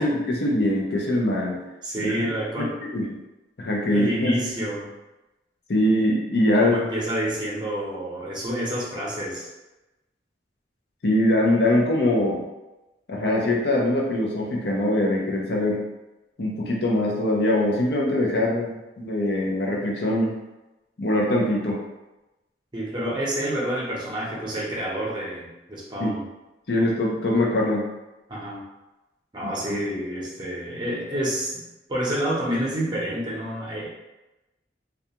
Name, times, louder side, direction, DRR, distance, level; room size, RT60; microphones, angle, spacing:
voice 1, 0.0-1.6 2.0-2.3 2.9-3.1 3.6-4.3 5.7-6.8 11.0-12.4 13.1-15.9 16.4-20.4 21.0-21.8 26.0-26.1 26.7-27.9, left 1 dB, 65° left, -2 dB, 0.6 m, -22 dB
voice 2, 1.8-2.7 3.9-4.9 6.6-9.5 22.7-26.2 28.3-28.6 29.3-33.9, right 1 dB, 25° right, -5 dB, 0.7 m, -28 dB
2.3 x 2.3 x 2.8 m, 1.0 s
head